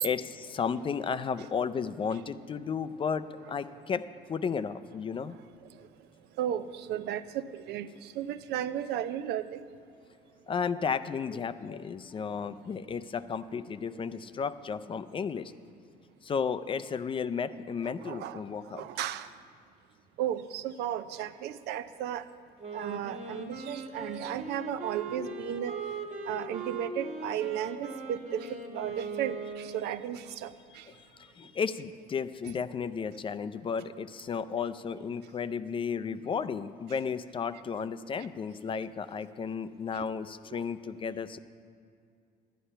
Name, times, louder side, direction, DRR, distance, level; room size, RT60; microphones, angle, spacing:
voice 1, 0.0-4.0 4.3-5.4 10.5-15.5 16.2-18.9 30.9-41.4, left 6 dB, 30° left, 12 dB, 0.4 m, -33 dB
voice 2, 6.4-9.6 17.8-19.4 20.2-22.3 22.7-25.8 26.3-30.9 32.5-32.6 39.9-40.0 40.5-40.7, right 10 dB, 80° right, 12 dB, 0.5 m, -35 dB
Wind instrument woodwind instrument, 22.6-30.2, right 3 dB, 45° right, 1.5 m, -40 dB
11.5 x 10.0 x 5.6 m, 2.3 s
cardioid pair, 110°, 17 cm